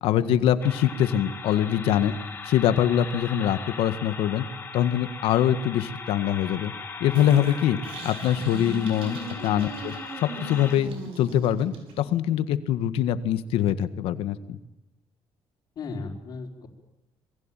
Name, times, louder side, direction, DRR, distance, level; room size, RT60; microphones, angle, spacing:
voice 1, 0.0-2.1 2.5-4.4 4.7-6.7 7.0-7.8 8.0-9.2 9.4-14.6, left 11 dB, 80° left, 12 dB, 1.8 m, -23 dB
sound 1, 0.6-10.8, left 4 dB, 20° left, 2.8 m, -39 dB
sound 2, 7.2-12.1, right 3 dB, 80° right, 7.7 m, -39 dB
voice 2, 15.8-16.7, left 4 dB, 45° left, 0 dB, 5.2 m, -36 dB
27.5 x 21.5 x 9.2 m, 0.91 s
cardioid pair, 165°, 9 cm